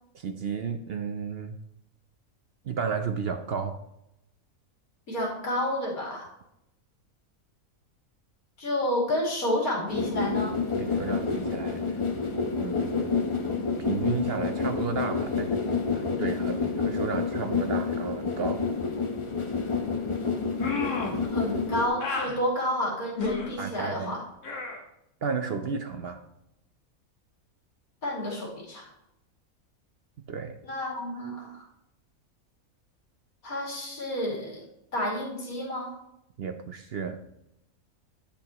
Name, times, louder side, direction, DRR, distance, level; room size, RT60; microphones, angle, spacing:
voice 1, 0.1-1.6 2.6-3.8 10.8-11.8 12.6-13.2 13.8-15.6 15.9-18.7 23.6-24.2 25.2-26.2 30.3-30.6 36.4-37.2, right 5 dB, 55° right, 7 dB, 0.7 m, -33 dB
voice 2, 5.1-6.3 8.6-10.6 21.3-24.2 28.0-28.9 30.6-31.6 33.4-34.6 34.9-35.9, left 1 dB, 85° left, -3 dB, 3.0 m, -30 dB
sound 1, 9.9-21.9, left 5 dB, 25° left, 0.8 m, -29 dB
sound 2, 20.6-21.2 22.0-22.4 23.2-23.5 24.4-24.8, left 4 dB, 60° left, 1.6 m, -31 dB
10.5 x 8.0 x 3.0 m, 0.84 s
omnidirectional pair, 1.5 m